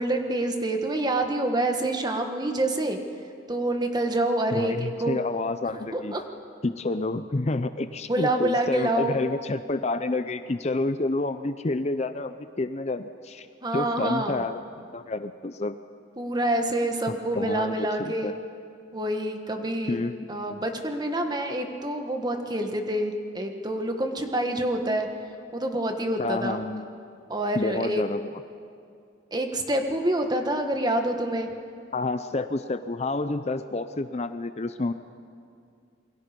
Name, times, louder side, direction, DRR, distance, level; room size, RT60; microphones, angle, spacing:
voice 1, 0.0-3.0 3.5-5.2 5.9-6.2 8.1-9.2 13.6-14.4 16.2-18.3 18.9-20.0 20.3-25.1 25.5-26.6 27.3-28.0 29.3-31.5, right 1 dB, 20° right, 4 dB, 1.7 m, -27 dB
voice 2, 4.5-6.2 6.6-13.5 13.7-15.8 17.3-18.3 19.9-20.6 26.2-26.9 27.5-28.3 31.9-34.9, left 2 dB, 35° left, 10 dB, 0.6 m, -29 dB
28.0 x 22.5 x 5.3 m, 2.4 s
head